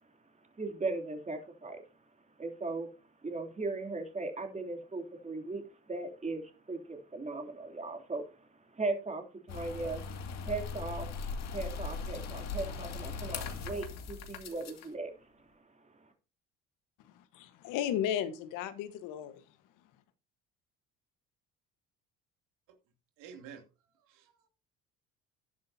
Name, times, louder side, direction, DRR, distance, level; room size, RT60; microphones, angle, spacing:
voice 1, 0.0-1.8 2.4-2.9 3.2-10.0 10.5-11.1 11.5-16.1, right 3 dB, 20° right, 3.1 m, -38 dB
sound 1, 9.5-14.9, left 4 dB, 60° left, 2.3 m, -39 dB
voice 2, 17.1-19.4, left 10 dB, 80° left, 1.5 m, -34 dB
voice 3, 23.2-23.6 24.0-24.5, right 7 dB, 80° right, 2.9 m, -50 dB
12.5 x 10.5 x 2.8 m
supercardioid pair, 90°, 31 cm